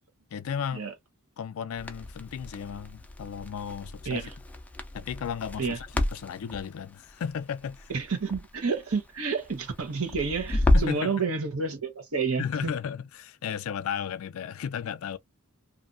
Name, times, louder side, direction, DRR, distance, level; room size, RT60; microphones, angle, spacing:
voice 1, 0.3-0.8 1.4-4.3 4.9-7.9 10.7-11.1 12.4-15.2, left 7 dB, 70° left, 0.4 m, -34 dB
Crackle, 1.8-11.1, left 1 dB, 5° left, 0.4 m, -31 dB
voice 2, 7.9-12.7, right 4 dB, 85° right, 1.0 m, -30 dB
2.8 x 2.5 x 2.4 m
head